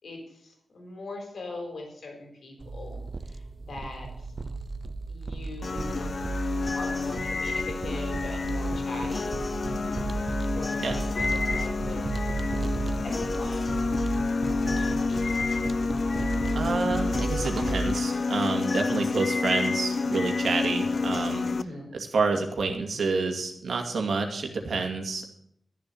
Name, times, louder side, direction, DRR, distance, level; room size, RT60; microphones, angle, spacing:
voice 1, 0.0-3.0 3.3-3.4 3.7-4.3 5.1-6.1 6.7-9.4 10.5-12.1 13.0-13.9 14.6-15.7 21.5-21.9, left 2 dB, 70° left, 2 dB, 4.0 m, -41 dB
sound 1, 2.6-18.0, right 3 dB, 40° right, 0.7 m, -34 dB
sound 2, 5.6-21.6, left 4 dB, 45° left, 0.5 m, -29 dB
voice 2, 16.5-21.5 21.9-25.2, right 4 dB, 85° right, 3 dB, 2.4 m, -28 dB
13.5 x 7.3 x 7.8 m, 0.70 s
wide cardioid pair, 175°, 0 cm